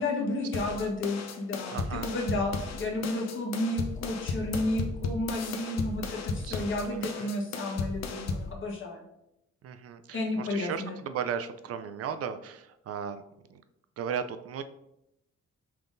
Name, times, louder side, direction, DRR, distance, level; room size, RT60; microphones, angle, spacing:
voice 1, 0.0-9.0 10.1-11.0, left 2 dB, 40° left, 0 dB, 1.3 m, -32 dB
sound 1, 0.5-8.5, left 4 dB, 60° left, 0.7 m, -35 dB
voice 2, 1.7-2.1 6.4-7.3 9.6-13.2 13.5-13.6 14.0-14.6, right 7 dB, 50° right, 10 dB, 0.5 m, -36 dB
5.7 x 3.6 x 2.6 m, 0.83 s
cardioid pair, 90°, 30 cm